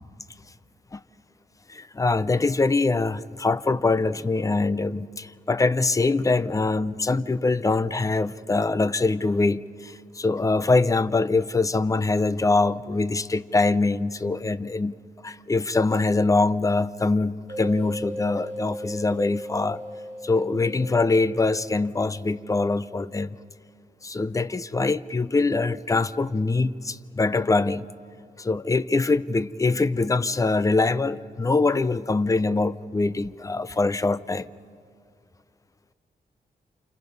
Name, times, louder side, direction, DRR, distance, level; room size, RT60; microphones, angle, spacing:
voice 1, 1.7-14.9 15.2-19.8 20.2-23.4 24.0-27.9 28.4-34.5, left 3 dB, 20° left, 0.5 m, -23 dB
sound 1, 17.5-22.8, equal, 45° right, 6.8 m, -38 dB
30.0 x 28.0 x 5.4 m
wide cardioid pair, 140°, 16 cm